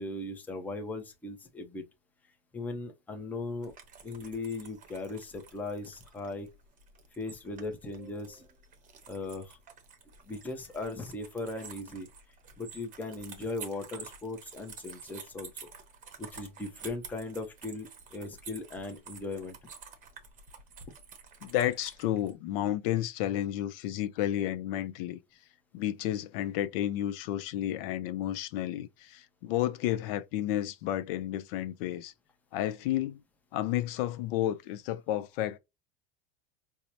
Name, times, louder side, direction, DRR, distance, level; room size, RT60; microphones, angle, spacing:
voice 1, 0.0-1.8 2.5-3.7 4.0-6.5 7.2-8.5 9.1-9.6 10.3-12.1 12.6-15.5 16.2-19.6, left 2 dB, 5° left, 0.5 m, -38 dB
sound 1, 3.6-22.3, right 6 dB, 25° right, 0.8 m, -50 dB
voice 2, 21.4-25.2 25.7-32.1 32.5-33.2 33.5-35.6, left 12 dB, 60° left, 0.5 m, -31 dB
4.5 x 2.1 x 2.7 m
supercardioid pair, 140°, 33 cm